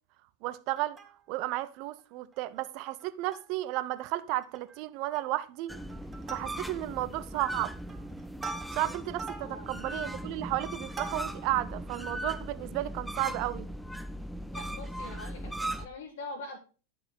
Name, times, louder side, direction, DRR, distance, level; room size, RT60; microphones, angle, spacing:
voice 1, 0.4-1.0 1.3-5.8 6.3-7.7 8.7-13.7, right 16 dB, 45° right, 0.6 m, -33 dB
Plucked string instrument, 0.7-1.6 2.0-2.1 2.3-2.5 3.0-3.7 4.0-4.1 4.4-4.8 5.1-5.5 5.9-6.9 7.5-11.6 12.1-12.2, right 4 dB, 20° right, 1.2 m, -45 dB
sound 1, 5.7-15.9, equal, ahead, 0.6 m, -39 dB
voice 2, 9.4-9.7 14.5-16.6, left 2 dB, 55° left, 1.4 m, -43 dB
10.5 x 5.7 x 3.8 m
figure-of-eight pair, 90°, 0 cm